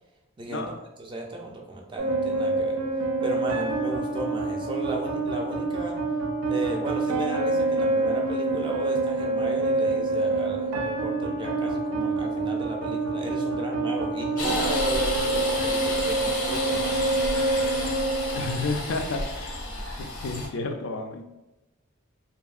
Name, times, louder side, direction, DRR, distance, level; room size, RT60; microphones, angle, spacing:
voice 1, 0.4-0.7 1.0-2.8 3.2-6.0 6.5-17.1, right 2 dB, 25° right, 1 dB, 0.4 m, -35 dB
sound 1, 2.0-19.0, right 2 dB, 85° right, 0.4 m, -27 dB
sound 2, 14.4-20.5, left 2 dB, 85° left, 0.7 m, -31 dB
voice 2, 18.3-19.5 20.0-21.3, left 3 dB, 60° left, 5 dB, 0.4 m, -31 dB
2.6 x 2.6 x 2.4 m, 0.99 s
head